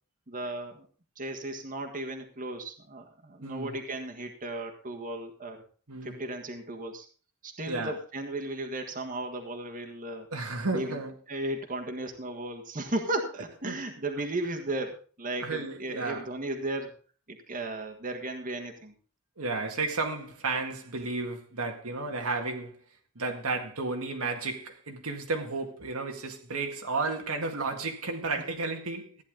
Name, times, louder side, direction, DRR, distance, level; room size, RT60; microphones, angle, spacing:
voice 1, 0.3-0.9 1.2-5.6 6.0-7.1 7.4-10.3 10.7-11.0 11.3-16.9 17.3-18.9, right 2 dB, 40° right, 1.7 m, -35 dB
voice 2, 3.4-3.8 5.9-6.2 7.7-7.9 10.3-11.1 13.7-13.8 15.4-16.3 19.4-22.8 23.2-29.2, right 3 dB, 85° right, 2.0 m, -33 dB
14.5 x 10.0 x 3.8 m
head